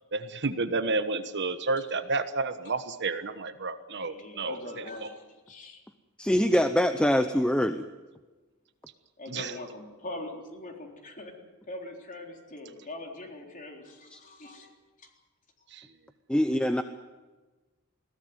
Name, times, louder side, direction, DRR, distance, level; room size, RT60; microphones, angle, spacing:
voice 1, 0.1-5.1 9.3-9.5 15.7-15.9, right 3 dB, 55° right, 11 dB, 1.2 m, -31 dB
voice 2, 4.0-5.8 9.2-11.3 11.7-14.7 15.0-15.1, left 2 dB, 40° left, 2 dB, 3.8 m, -42 dB
voice 3, 6.2-7.9 14.1-14.2 16.3-16.8, equal, 5° left, 9 dB, 0.7 m, -24 dB
21.5 x 16.5 x 9.5 m, 1.3 s
head